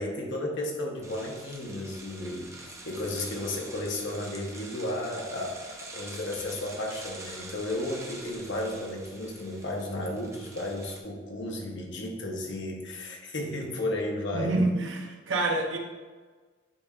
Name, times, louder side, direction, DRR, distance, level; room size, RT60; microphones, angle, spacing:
voice 1, 0.0-14.6, left 1 dB, 65° left, 0 dB, 1.1 m, -33 dB
sound 1, 1.0-11.0, right 2 dB, 15° right, 0.7 m, -45 dB
voice 2, 14.3-15.8, right 2 dB, 70° right, 2 dB, 0.8 m, -27 dB
9.4 x 4.3 x 2.4 m, 1.4 s
head